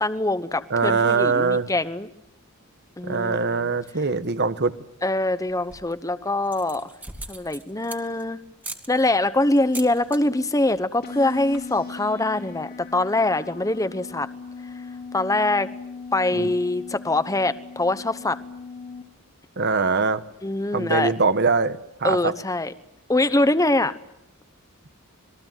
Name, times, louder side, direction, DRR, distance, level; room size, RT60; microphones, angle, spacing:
voice 1, 0.0-2.1 3.0-3.7 5.0-6.9 7.3-8.4 8.9-14.3 15.1-15.7 16.1-18.4 20.4-21.1 22.0-22.7 23.1-23.9, left 2 dB, 15° left, 13 dB, 1.0 m, -23 dB
voice 2, 0.7-1.7 3.0-4.7 16.3-16.5 19.6-20.2 20.7-22.3, right 4 dB, 50° right, 12 dB, 1.2 m, -22 dB
sound 1, 5.5-6.0 6.4-8.2 8.6-8.9 9.6-10.2 10.5-10.8 11.1-11.2 11.4-11.8, right 2 dB, 10° right, 2.1 m, -39 dB
sound 2, 11.0-19.0, left 5 dB, 45° left, 2.9 m, -39 dB
27.0 x 21.0 x 9.2 m, 0.83 s
head